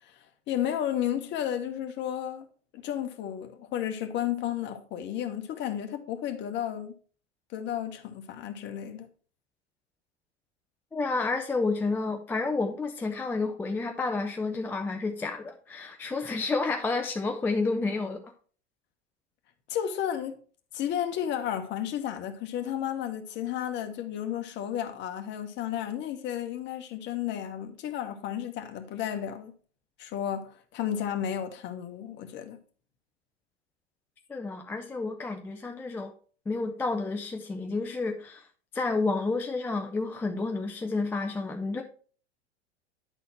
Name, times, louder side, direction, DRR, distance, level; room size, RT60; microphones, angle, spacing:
voice 1, 0.2-2.5 2.7-6.9 7.5-9.1 19.7-20.3 20.7-29.5 30.0-32.6, left 10 dB, 30° left, 1.1 m, -32 dB
voice 2, 10.9-18.2 34.3-36.1 36.5-38.5 38.7-41.8, left 3 dB, 5° left, 0.4 m, -30 dB
10.0 x 4.1 x 4.5 m
figure-of-eight pair, 85°, 35 cm